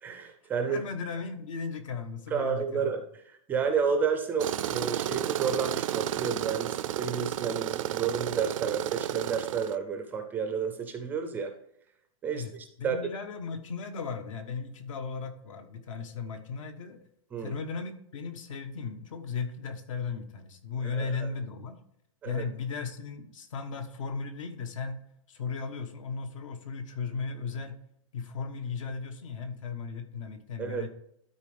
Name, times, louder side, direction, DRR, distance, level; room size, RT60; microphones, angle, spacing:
voice 1, 0.0-0.8 2.3-11.5 12.2-13.0 17.3-17.6 20.8-21.3 22.2-22.4 30.6-30.9, right 6 dB, 10° right, 6 dB, 0.4 m, -31 dB
voice 2, 0.7-2.9 12.3-12.5 12.8-17.0 17.4-21.8 22.2-25.0 25.3-27.8 28.1-30.9, left 5 dB, 65° left, 8 dB, 1.2 m, -36 dB
Tools, 4.4-9.8, right 12 dB, 70° right, 0.4 m, -32 dB
12.5 x 4.4 x 3.4 m, 0.71 s
supercardioid pair, 165°, 17 cm